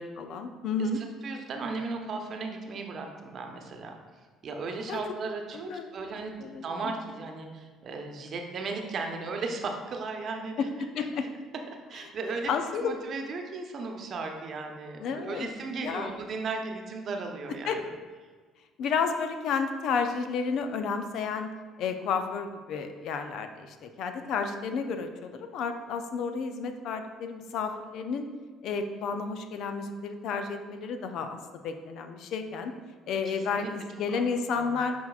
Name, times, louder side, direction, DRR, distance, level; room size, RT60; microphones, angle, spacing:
voice 1, 0.0-1.0 4.9-5.0 5.7-6.0 6.4-6.9 11.0-11.2 12.5-12.9 15.0-15.5 15.8-16.1 17.7-17.8 18.8-21.5 21.8-28.3 28.6-31.4 31.6-32.7 33.1-34.9, left 5 dB, 60° left, 7 dB, 0.5 m, -31 dB
voice 2, 0.8-3.9 4.4-10.7 11.9-12.5 12.8-17.8 33.1-33.7 34.1-34.2 34.6-34.7, right 4 dB, 50° right, 3 dB, 0.9 m, -36 dB
10.5 x 4.6 x 2.4 m, 1.5 s
hypercardioid pair, 55°, 0 cm